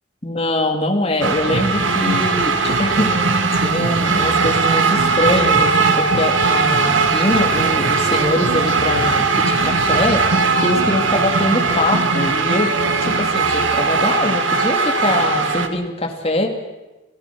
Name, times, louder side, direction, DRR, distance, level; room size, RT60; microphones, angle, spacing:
voice 1, 0.2-10.2 10.6-12.7 13.0-16.6, left 1 dB, 30° left, 2 dB, 2.8 m, -22 dB
sound 1, 1.2-15.7, right 4 dB, 80° right, 1.8 m, -18 dB
29.5 x 15.5 x 6.2 m, 1.1 s
head